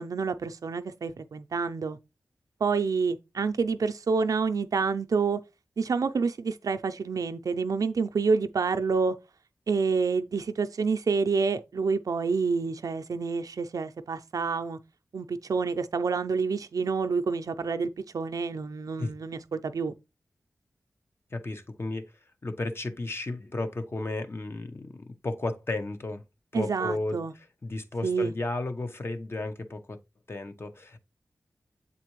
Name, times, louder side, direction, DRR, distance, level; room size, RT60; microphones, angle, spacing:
voice 1, 0.0-2.0 2.6-5.4 5.8-9.2 9.7-14.8 15.1-19.9 26.5-27.3 28.0-28.3, right 5 dB, 75° right, 0.5 m, -28 dB
voice 2, 21.3-22.1 22.4-26.2 26.5-30.0 30.3-31.0, left 2 dB, 40° left, 0.8 m, -34 dB
7.4 x 4.1 x 3.1 m
cardioid pair, 60°, 6 cm